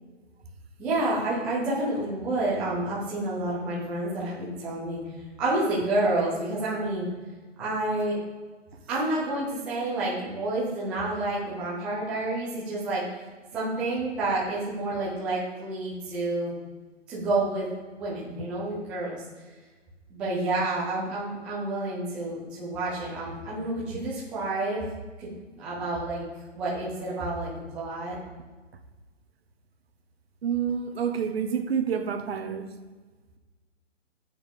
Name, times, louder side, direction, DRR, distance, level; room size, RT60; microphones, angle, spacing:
voice 1, 0.8-5.0 5.4-7.1 7.6-8.2 8.9-13.0 13.5-16.5 17.1-17.7 17.9-19.2 20.1-24.9 25.2-26.2 26.5-28.2, right 2 dB, 5° right, -8 dB, 0.5 m, -29 dB
voice 2, 30.4-32.6, right 7 dB, 55° right, 8 dB, 1.2 m, -28 dB
9.8 x 7.2 x 3.6 m, 1.3 s
hypercardioid pair, 155°, 37 cm